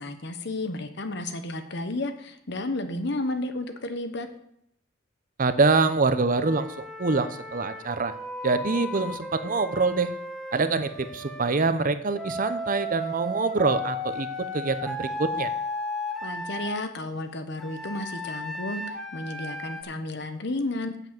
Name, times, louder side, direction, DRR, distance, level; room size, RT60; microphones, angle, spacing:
voice 1, 0.0-4.3 16.2-20.9, left 2 dB, 60° left, 8 dB, 1.2 m, -32 dB
voice 2, 5.4-8.1 8.4-10.2 10.5-15.5, right 3 dB, 45° right, 12 dB, 0.7 m, -25 dB
Wind instrument woodwind instrument, 6.4-11.5 12.2-16.8 17.6-19.8, left 1 dB, ahead, 1.6 m, -35 dB
8.4 x 7.0 x 7.7 m, 0.75 s
head